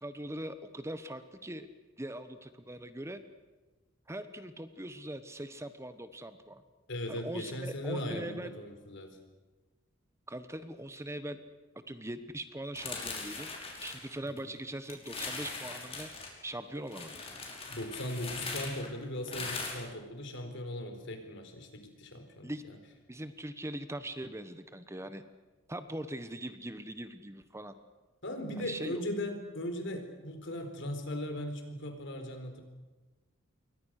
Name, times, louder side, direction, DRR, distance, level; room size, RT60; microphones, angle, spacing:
voice 1, 0.0-1.7 2.0-3.2 4.1-6.6 7.1-8.6 10.3-11.4 11.7-16.1 16.4-17.1 22.4-22.6 23.1-25.2 25.7-27.7 28.6-29.0, right 1 dB, 15° right, 11 dB, 1.1 m, -41 dB
voice 2, 6.9-9.2 14.2-14.5 17.7-22.8 28.2-32.6, left 1 dB, 65° left, 6 dB, 4.3 m, -38 dB
sound 1, 12.8-14.6 14.9-16.3 16.9-19.7, left 4 dB, 30° left, 5.3 m, -40 dB
28.0 x 23.0 x 6.6 m, 1.2 s
head